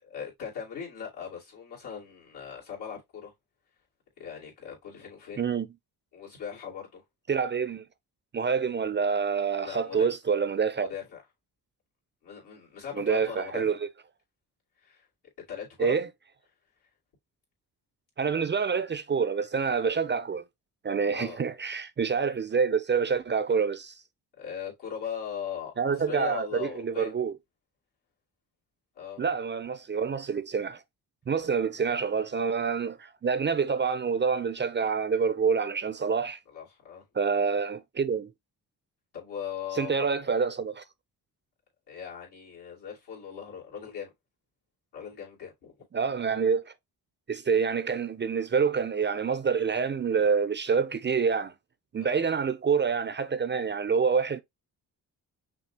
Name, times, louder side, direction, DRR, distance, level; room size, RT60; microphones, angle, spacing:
voice 1, 0.0-3.3 4.2-5.5 6.1-7.0 9.6-10.1 10.8-11.2 12.2-13.7 14.8-15.1 15.4-16.0 21.1-21.4 24.4-27.1 29.0-29.3 36.5-37.0 39.1-40.3 41.9-44.1 44.9-45.8 52.0-52.2, left 8 dB, 85° left, 2.6 m, -39 dB
voice 2, 7.3-7.8 8.3-10.9 13.0-13.8 15.8-16.1 18.2-20.4 20.8-23.9 25.8-27.3 29.2-30.8 31.3-36.4 37.1-38.3 39.7-40.8 45.9-46.7 47.3-51.5 51.9-54.4, right 6 dB, 30° right, 0.4 m, -27 dB
6.0 x 2.4 x 2.8 m
cardioid pair, 70°, 39 cm